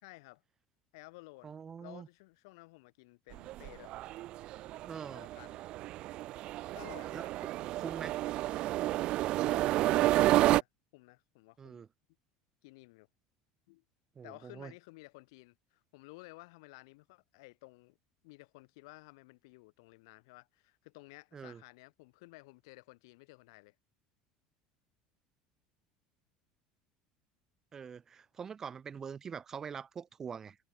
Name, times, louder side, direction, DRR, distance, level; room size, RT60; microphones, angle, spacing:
voice 1, 0.0-0.4 0.9-1.5 1.8-4.0 5.1-5.6 6.7-7.3 9.4-10.7 10.9-11.8 12.6-13.1 13.7-13.8 14.2-18.0 18.2-23.7, left 25 dB, 85° left, 1.7 m, -54 dB
voice 2, 1.4-2.1 4.9-5.3 7.1-7.2 7.8-8.2 11.6-11.9 14.2-14.7 21.3-21.6 27.7-30.6, right 6 dB, 20° right, 1.8 m, -44 dB
sound 1, 3.3-10.6, right 16 dB, 40° right, 0.3 m, -30 dB
cardioid pair, 165°, 2 cm